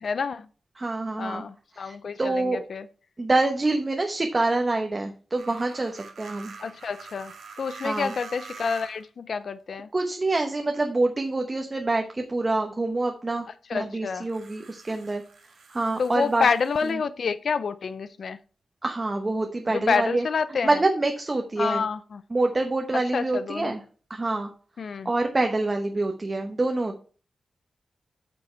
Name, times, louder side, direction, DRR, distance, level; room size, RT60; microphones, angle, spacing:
voice 1, 0.0-0.5 1.2-2.9 6.6-7.3 7.6-9.9 13.7-14.3 16.0-18.4 19.7-20.8 21.6-22.2 22.9-23.7 24.8-25.1, left 5 dB, 60° left, 0.5 m, -28 dB
voice 2, 0.8-1.4 1.7-2.6 3.2-6.5 7.8-8.1 9.9-13.5 13.7-15.2 15.7-16.5 16.9-17.0 18.8-20.2 20.6-21.8 22.3-23.8 24.1-24.5 25.0-27.0, right 2 dB, 25° right, 1.0 m, -26 dB
sound 1, 5.4-9.1 10.1-10.2 14.2-16.9, right 5 dB, 80° right, 3.5 m, -45 dB
8.7 x 6.9 x 4.5 m
wide cardioid pair, 165°, 0 cm